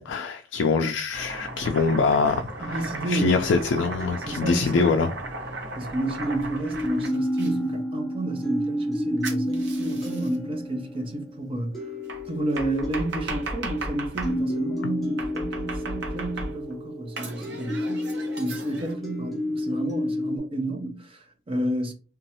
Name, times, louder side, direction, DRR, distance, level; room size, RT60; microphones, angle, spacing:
voice 1, 0.0-2.7 3.1-5.1, left 4 dB, 80° left, 0.3 m, -24 dB
Domestic sounds home sounds, 1.1-7.5 9.2-10.4 12.1-14.4 15.2-16.7 17.2-18.9, right 2 dB, 65° right, 0.8 m, -36 dB
voice 2, 2.6-3.4 4.3-4.9 5.7-11.9 12.3-21.9, right 1 dB, 30° right, 0.6 m, -31 dB
sound 1, 2.9-5.8 6.2-20.4, equal, ahead, 0.8 m, -31 dB
3.0 x 2.3 x 2.8 m
head